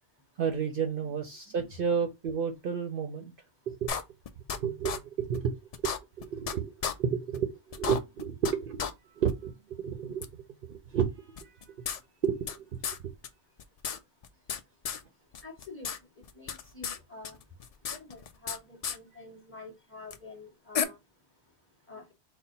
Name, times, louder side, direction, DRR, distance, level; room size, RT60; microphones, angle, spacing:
voice 1, 0.4-3.3 3.7-3.9 4.5-6.7 7.0-8.8 9.1-11.8 12.2-13.1, right 7 dB, 60° right, 0.7 m, -32 dB
sound 1, 3.9-4.6 4.8-5.0 5.3-5.4 5.7-6.5 6.8-6.9 7.3-7.4 7.7-8.5 8.8-8.9 9.3-9.4 10.2-10.3 11.4-12.6 12.8-13.0 13.2-13.3 13.6-14.6 14.8-15.0 15.3-16.0 16.2-17.0 17.2-18.6 18.8-19.0 20.1-20.2 20.7-20.8, left 7 dB, 65° left, 0.3 m, -33 dB
voice 2, 15.4-15.9 16.3-17.4 17.9-21.0 21.9-22.1, left 3 dB, 10° left, 1.2 m, -47 dB
4.1 x 2.1 x 3.9 m
omnidirectional pair, 1.1 m